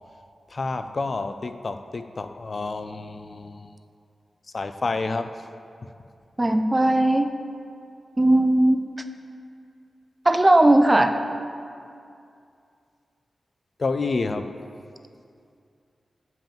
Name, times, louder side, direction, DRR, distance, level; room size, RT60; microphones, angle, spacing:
voice 1, 0.5-3.7 4.5-5.3 13.8-14.5, left 3 dB, 45° left, 9 dB, 0.3 m, -29 dB
voice 2, 6.4-7.3 8.2-8.8 10.3-11.2, right 1 dB, 20° right, 8 dB, 0.4 m, -18 dB
7.4 x 5.5 x 6.9 m, 2.4 s
wide cardioid pair, 105°, 0 cm